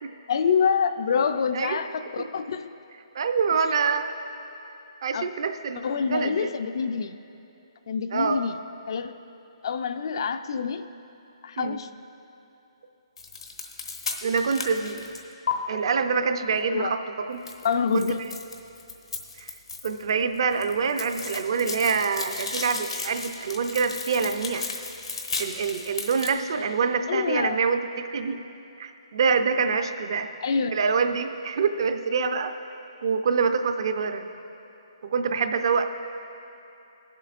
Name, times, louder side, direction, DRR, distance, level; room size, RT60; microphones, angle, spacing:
voice 1, 0.3-2.7 3.5-3.6 5.1-5.2 5.8-7.2 7.9-8.6 8.9-9.2 9.6-10.9 11.4-11.9 16.7-16.9 17.6-18.1 27.1-27.6 29.7-29.8 30.4-30.8, left 6 dB, 55° left, 10 dB, 0.4 m, -26 dB
voice 2, 3.1-4.1 5.0-6.5 8.1-8.4 11.6-11.8 14.2-15.0 15.7-17.4 17.9-18.3 19.4-19.5 19.8-24.7 25.4-28.4 28.8-30.3 30.7-32.5 33.0-34.3 35.0-35.8, right 5 dB, 55° right, 8 dB, 0.5 m, -26 dB
sound 1, 13.2-15.5 17.5-20.1 20.4-26.3, left 5 dB, 85° left, 1.1 m, -34 dB
21.0 x 7.4 x 2.5 m, 2.8 s
hypercardioid pair, 160°, 3 cm